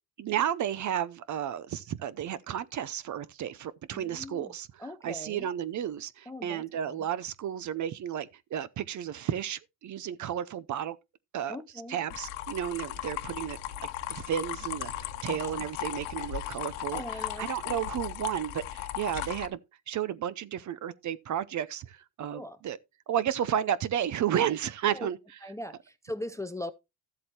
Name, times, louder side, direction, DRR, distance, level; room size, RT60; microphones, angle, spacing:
voice 1, 0.2-11.0 11.3-11.6 11.9-13.6 14.1-17.0 17.4-19.6 19.9-22.8 23.1-25.2, right 10 dB, 40° right, 0.7 m, -32 dB
voice 2, 3.9-4.5 4.8-5.5 6.3-7.1 11.5-12.0 15.3-15.6 16.9-17.8 22.3-22.6 24.9-25.1 25.4-26.7, left 1 dB, 5° left, 0.5 m, -40 dB
sound 1, 12.1-19.5, left 13 dB, 90° left, 1.2 m, -37 dB
13.0 x 7.7 x 2.9 m
supercardioid pair, 95°, 45 cm